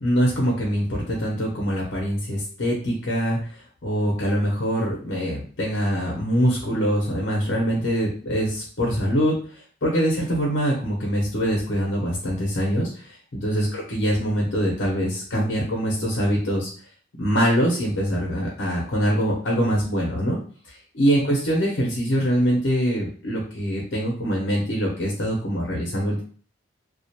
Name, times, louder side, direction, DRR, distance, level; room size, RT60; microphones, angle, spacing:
voice 1, 0.0-3.4 3.8-9.4 9.8-16.7 17.2-20.4 20.9-26.2, equal, 90° left, -3 dB, 0.7 m, -23 dB
2.4 x 2.1 x 2.8 m, 0.43 s
head